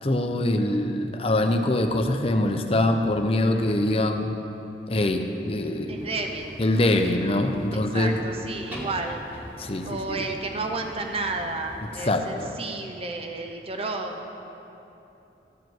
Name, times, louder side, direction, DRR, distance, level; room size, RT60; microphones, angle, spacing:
voice 1, 0.0-4.3 4.9-6.1 6.6-8.1 9.6-10.3 12.1-12.5, left 1 dB, 35° left, 5 dB, 0.7 m, -24 dB
voice 2, 5.9-6.5 7.9-9.2 9.8-14.3, right 3 dB, 35° right, 4 dB, 0.7 m, -32 dB
sound 1, 6.0-12.1, equal, 10° right, 1.9 m, -42 dB
13.5 x 5.0 x 7.7 m, 2.9 s
head